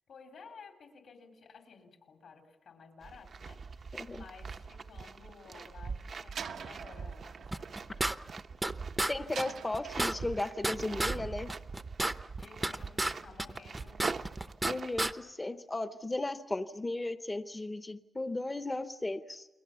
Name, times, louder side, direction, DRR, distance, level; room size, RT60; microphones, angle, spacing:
voice 1, 0.1-8.4 12.4-14.1, left 5 dB, 75° left, 3 dB, 4.2 m, -54 dB
sound 1, 3.0-15.1, right 5 dB, 50° right, 0.8 m, -43 dB
voice 2, 3.9-4.2 9.1-11.5 14.6-19.5, left 2 dB, 20° left, 9 dB, 0.9 m, -35 dB
Slam, 6.3-8.7 9.3-10.6, right 7 dB, 80° right, 1.0 m, -45 dB
sound 2, 7.5-8.7 9.0-9.1 9.4-9.5 9.7-11.2 11.5-13.1 13.4-14.7 15.0-15.1, right 1 dB, 10° right, 0.7 m, -32 dB
29.5 x 22.0 x 7.0 m, 1.2 s
wide cardioid pair, 130°, 0 cm